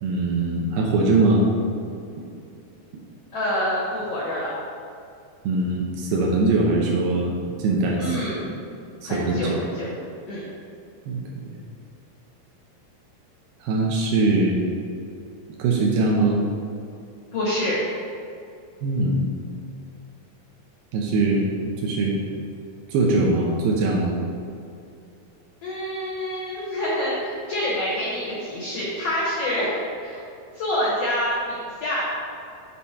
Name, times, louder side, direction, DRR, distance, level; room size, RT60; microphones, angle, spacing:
voice 1, 0.0-1.7 2.2-2.3 5.4-8.4 9.0-9.6 11.1-11.6 13.6-14.6 15.6-16.4 18.8-19.3 20.9-21.5 21.8-22.2 22.9-24.2, right 2 dB, 80° right, -2 dB, 2.6 m, -22 dB
voice 2, 3.3-4.5 8.0-8.5 9.0-9.9 10.3-10.4 17.3-17.8 25.6-29.7 30.0-30.2 30.5-32.1, left 1 dB, 80° left, -6 dB, 1.4 m, -27 dB
7.4 x 4.2 x 4.2 m, 2.6 s
omnidirectional pair, 4.5 m